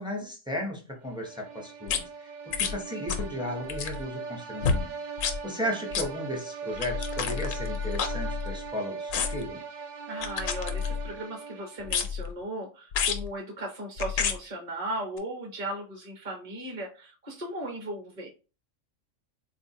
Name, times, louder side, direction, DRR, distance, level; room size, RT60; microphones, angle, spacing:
voice 1, 0.0-4.9 5.4-9.6, equal, 5° right, 0.5 m, -35 dB
sound 1, 1.1-12.1, right 5 dB, 65° right, 0.4 m, -40 dB
sound 2, 1.9-2.0 2.5-2.8 3.1-3.3 3.6-4.0 4.6-4.8 5.2-5.4 5.9-6.1 6.8-8.7 9.1-9.5 10.2-11.2 11.9-12.3 12.9-13.3 14.0-14.4 15.2-15.3, left 7 dB, 85° left, 1.0 m, -29 dB
voice 2, 10.1-18.3, right 1 dB, 35° right, 0.8 m, -37 dB
3.8 x 2.4 x 2.7 m
omnidirectional pair, 1.3 m